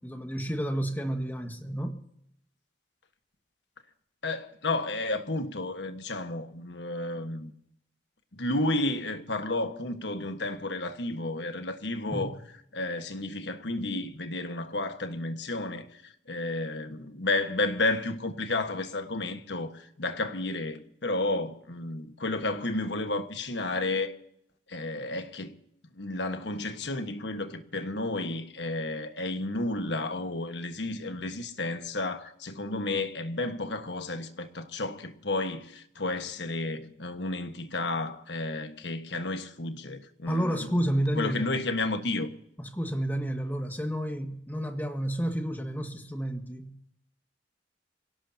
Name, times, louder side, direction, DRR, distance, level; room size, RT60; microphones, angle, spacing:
voice 1, 0.0-2.0 12.1-12.3 40.2-41.5 42.7-46.9, equal, 10° left, 1.6 m, -31 dB
voice 2, 4.2-7.5 8.3-12.4 12.7-24.1 24.7-25.5 25.9-40.8 41.2-42.3, left 2 dB, 75° left, 1.5 m, -32 dB
26.5 x 17.0 x 2.9 m
head